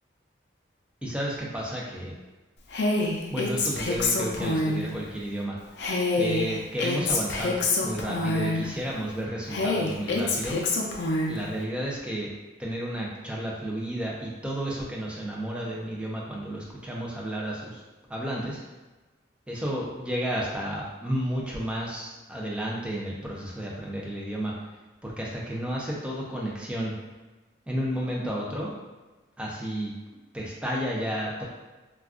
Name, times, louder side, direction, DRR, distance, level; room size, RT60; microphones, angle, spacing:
voice 1, 1.0-2.1 3.3-5.6 6.1-10.6 11.3-12.3 12.6-17.8 18.1-18.6 19.5-24.5 25.0-26.9 27.7-28.7 29.4-29.9 30.3-31.4, equal, 5° right, -4 dB, 0.4 m, -32 dB
Female speech woman speaking, 2.7-4.9 5.8-8.7 9.5-11.4, left 2 dB, 60° left, 0.4 m, -26 dB
2.4 x 2.3 x 3.5 m, 1.2 s
head